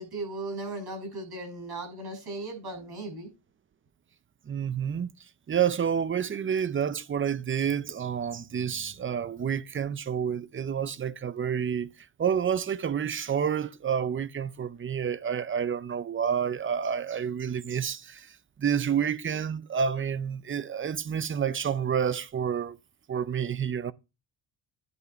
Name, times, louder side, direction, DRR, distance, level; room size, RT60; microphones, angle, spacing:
voice 1, 0.0-3.3, right 2 dB, 55° right, 6.4 m, -37 dB
voice 2, 4.5-5.1 5.5-11.9 12.2-22.8 23.1-23.9, right 8 dB, 25° right, 0.5 m, -29 dB
11.0 x 5.4 x 4.3 m
cardioid pair, 120°, 46 cm